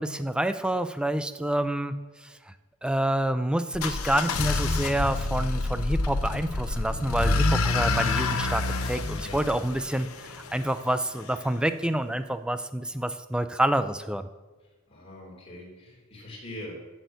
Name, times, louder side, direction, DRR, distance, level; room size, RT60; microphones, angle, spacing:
voice 1, 0.0-2.4 2.8-14.3, right 1 dB, 5° right, 10 dB, 0.3 m, -28 dB
sound 1, 3.7-10.6, left 3 dB, 75° left, 0.8 m, -27 dB
voice 2, 14.9-16.7, left 1 dB, 25° left, -3 dB, 3.0 m, -42 dB
8.1 x 6.2 x 7.9 m, 1.3 s
head